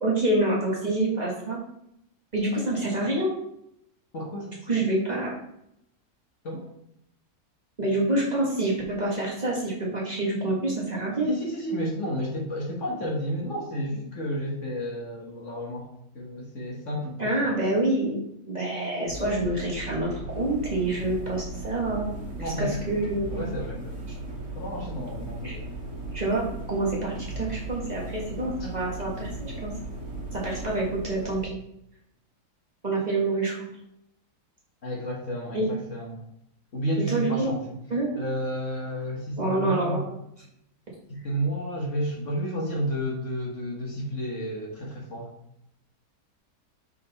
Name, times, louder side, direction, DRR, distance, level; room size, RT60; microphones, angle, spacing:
voice 1, 0.0-1.6 2.3-3.3 4.7-5.3 7.8-11.3 17.2-22.1 22.6-23.4 25.4-25.5 26.1-26.4 26.7-29.7 30.3-31.4 32.8-33.7 35.5-35.7 37.1-37.5 37.9-38.1 39.4-40.0, right 2 dB, 25° right, -5 dB, 1.6 m, -27 dB
voice 2, 4.1-4.5 6.4-6.6 11.3-15.9 16.1-17.5 22.4-22.8 23.3-24.0 24.5-25.7 28.6-28.9 34.8-36.2 36.7-37.6 38.2-40.0 41.1-45.3, equal, 50° left, -1 dB, 1.4 m, -31 dB
sound 1, 19.1-31.5, right 2 dB, 50° right, 1.6 m, -37 dB
5.6 x 5.0 x 4.1 m, 0.78 s
omnidirectional pair, 1.8 m